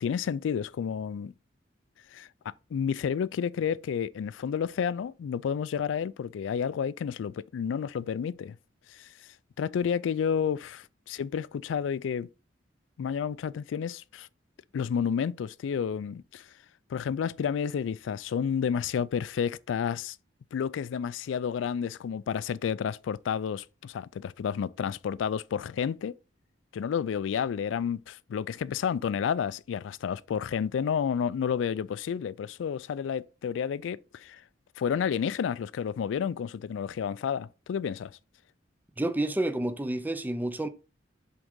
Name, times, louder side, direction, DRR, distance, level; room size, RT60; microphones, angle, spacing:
voice 1, 0.0-1.3 2.1-8.6 8.9-9.1 9.6-12.3 13.0-14.3 14.7-16.5 16.9-20.2 20.5-26.1 26.7-34.4 34.8-38.1, left 7 dB, 85° left, 0.3 m, -30 dB
voice 2, 39.0-40.7, right 1 dB, 10° right, 0.4 m, -29 dB
7.8 x 3.7 x 3.6 m
head